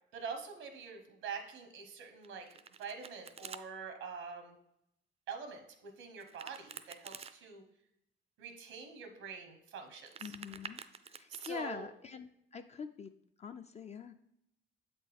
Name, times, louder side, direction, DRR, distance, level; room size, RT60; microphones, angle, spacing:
voice 1, 0.1-2.5 2.8-4.6 5.3-7.6 8.4-10.3 11.3-11.9, right 5 dB, 90° right, 5 dB, 1.0 m, -45 dB
Domestic sounds home sounds, 2.2-3.6 6.2-7.3 9.9-11.5, right 6 dB, 30° right, 0.4 m, -49 dB
voice 2, 10.2-10.8 11.1-13.1 13.4-14.1, left 6 dB, 35° left, 8 dB, 0.4 m, -44 dB
7.4 x 4.3 x 3.5 m, 0.78 s
cardioid pair, 90°, 20 cm